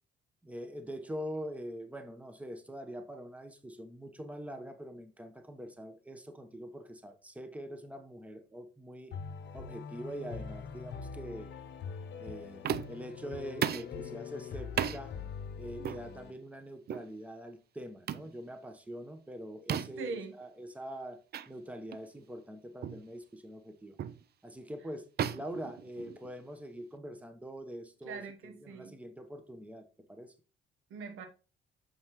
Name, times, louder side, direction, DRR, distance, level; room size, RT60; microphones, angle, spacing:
voice 1, 0.4-9.1 9.5-11.5 12.2-15.1 15.6-21.2 21.5-24.0 24.4-25.1 25.3-28.2 28.6-30.3, equal, 5° right, 1.0 m, -44 dB
sound 1, 9.1-16.3, left 6 dB, 60° left, 0.9 m, -43 dB
sound 2, 12.6-13.1 13.6-14.0 14.8-15.0 15.8-16.0 16.9-17.1 18.1-18.3 19.7-20.1 21.3-21.5 21.9-22.1 22.8-23.1 24.0-24.2 25.2-26.4, right 9 dB, 55° right, 0.5 m, -35 dB
voice 2, 20.0-20.3 28.0-29.0 30.9-31.3, right 4 dB, 85° right, 1.2 m, -41 dB
6.7 x 5.5 x 3.0 m
cardioid pair, 90°, 20 cm